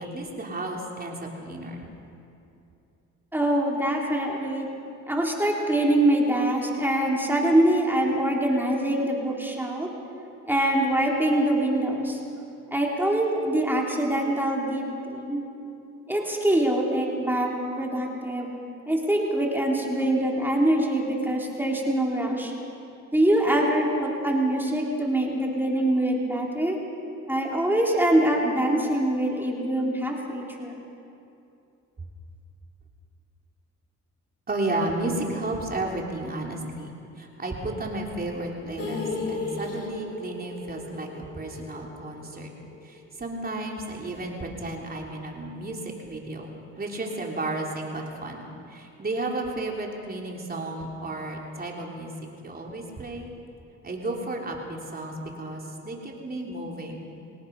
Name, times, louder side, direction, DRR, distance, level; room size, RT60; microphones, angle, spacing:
voice 1, 0.0-1.8 34.5-36.9 37.2-42.5 42.8-46.5 46.8-52.1 52.4-53.3 53.8-57.1, right 2 dB, 30° right, 0 dB, 3.7 m, -33 dB
voice 2, 3.3-4.7 5.1-9.9 10.4-12.2 12.7-15.4 16.1-17.5 17.8-18.5 18.9-22.5 23.1-26.8 27.3-30.8, right 1 dB, 5° right, -2 dB, 3.7 m, -24 dB
sound 1, 38.8-42.9 43.2-43.3 43.6-43.7, left 3 dB, 50° left, 3.2 m, -35 dB
26.0 x 18.5 x 5.5 m, 2.7 s
cardioid pair, 90°, 30 cm